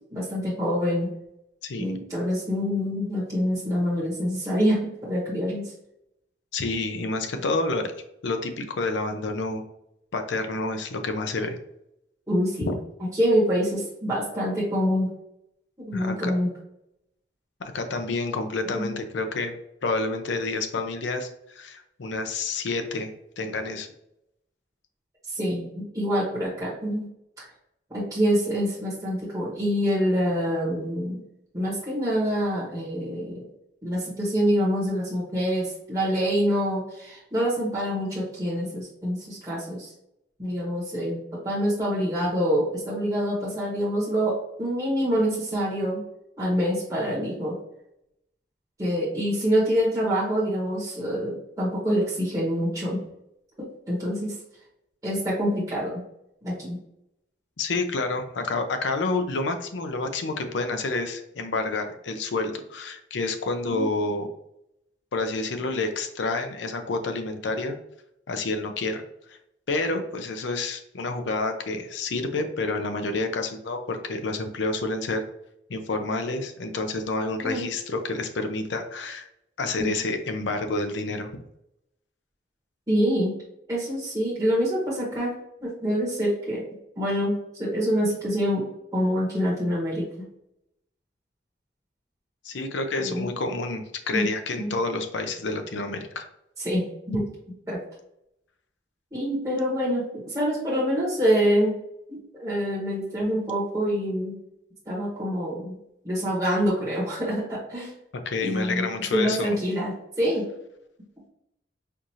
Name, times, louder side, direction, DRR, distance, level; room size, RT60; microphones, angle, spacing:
voice 1, 0.1-1.1 1.8-5.7 12.3-12.7 13.1-15.1 15.8-16.5 18.7-19.0 25.3-27.1 27.4-27.5 27.9-31.2 31.5-33.4 33.8-39.9 40.4-44.3 44.6-46.0 46.4-47.6 48.8-53.0 53.6-54.3 55.0-55.9 56.4-56.8 63.7-63.9 77.4-77.7 79.8-79.9 82.9-83.3 83.7-85.3 85.6-86.6 87.0-88.6 88.9-90.3 93.0-93.3 94.1-94.3 94.6-94.7 96.6-97.3 97.7-97.8 99.1-101.7 102.1-104.4 104.9-105.8 106.0-107.9 108.4-108.9 109.1-109.9 110.2-110.4, equal, 20° right, -7 dB, 1.0 m, -26 dB
voice 2, 1.6-1.9 6.5-7.9 8.2-9.6 10.1-11.6 12.7-12.8 15.9-16.3 17.6-19.5 19.8-23.9 57.6-64.3 65.1-67.8 68.3-69.0 69.3-69.4 69.7-75.2 75.7-79.3 79.6-81.3 92.4-96.3 108.3-109.6, left 3 dB, 85° left, 6 dB, 0.5 m, -29 dB
4.5 x 2.5 x 2.7 m, 0.80 s
head